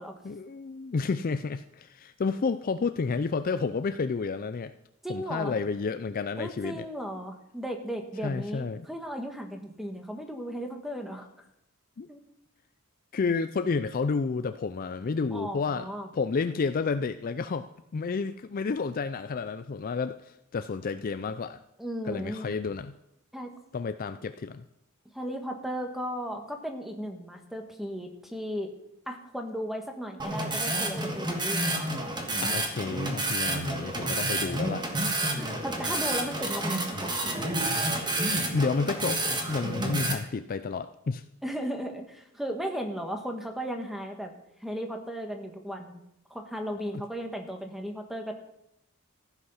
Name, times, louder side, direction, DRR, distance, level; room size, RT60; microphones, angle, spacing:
voice 1, 0.2-4.7 5.1-6.9 8.2-8.9 12.0-12.1 13.1-15.9 16.1-17.7 17.9-21.6 22.0-22.9 23.7-24.6 32.4-34.9 38.5-39.2 39.5-41.2 46.9-47.0, left 4 dB, 40° left, 10 dB, 0.4 m, -30 dB
voice 2, 5.0-5.5 6.4-11.3 12.1-12.2 15.3-16.1 21.8-22.5 23.3-23.5 25.1-28.7 29.1-31.8 35.3-37.1 41.4-44.3 44.6-46.0 46.3-48.3, equal, ahead, 4 dB, 1.4 m, -36 dB
sound 1, 30.2-40.1, right 2 dB, 20° right, 1.5 m, -29 dB
15.0 x 8.3 x 5.6 m, 0.82 s
head